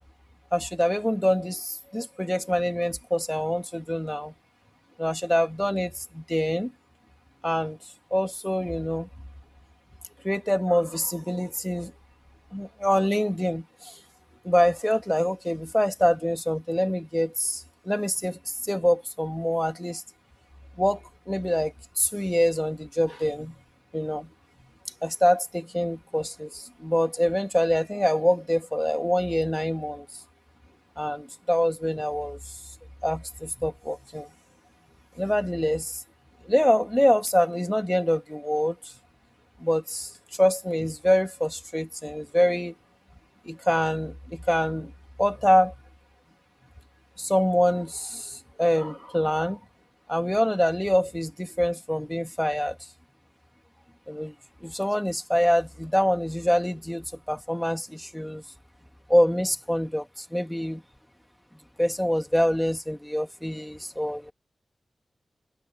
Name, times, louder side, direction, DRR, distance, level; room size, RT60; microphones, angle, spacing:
voice 1, 0.5-4.3 5.0-6.7 7.4-7.8 8.1-9.1 10.2-11.9 12.5-14.0 14.4-20.0 20.8-23.6 23.9-24.3 25.0-30.1 31.0-32.6 33.0-34.3 35.2-36.0 36.4-38.9 39.6-42.8 43.4-44.9 45.2-45.7 47.2-49.6 50.1-52.8 54.1-54.3 54.6-58.4 59.1-60.8 61.8-64.3, equal, 5° left, 2.5 m, -25 dB
wide cardioid pair, 80°, 0 cm